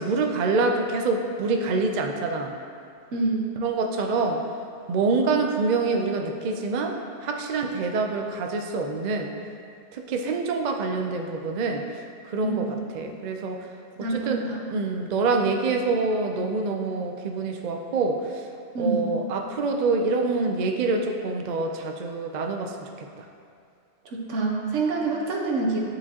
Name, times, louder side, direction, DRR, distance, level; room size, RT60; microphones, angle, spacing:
voice 1, 0.0-2.5 3.6-4.4 4.9-9.3 9.9-12.7 12.9-13.7 14.0-14.4 14.7-18.5 18.8-23.2, right 3 dB, 55° right, 3 dB, 0.5 m, -26 dB
voice 2, 3.1-3.5 12.4-12.7 14.0-14.6 18.7-19.0 24.0-25.8, right 3 dB, 80° right, -1 dB, 1.2 m, -26 dB
9.4 x 5.0 x 2.8 m, 2.4 s
omnidirectional pair, 1.2 m